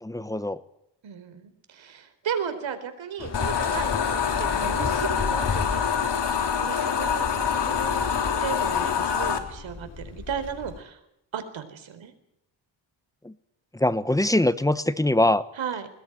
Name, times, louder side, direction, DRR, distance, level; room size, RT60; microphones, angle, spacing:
voice 1, 0.0-0.6 13.2-13.3 13.7-15.4, left 1 dB, 5° left, 13 dB, 1.1 m, -23 dB
voice 2, 1.0-6.0 6.3-11.0 11.3-12.1 15.5-15.9, right 7 dB, 75° right, 10 dB, 4.2 m, -35 dB
Waves surf, 3.2-10.8, left 4 dB, 35° left, 2.6 m, -35 dB
sound 1, 3.3-9.4, left 7 dB, 60° left, 3.5 m, -25 dB
22.0 x 20.5 x 9.3 m, 0.79 s
cardioid pair, 100°, 46 cm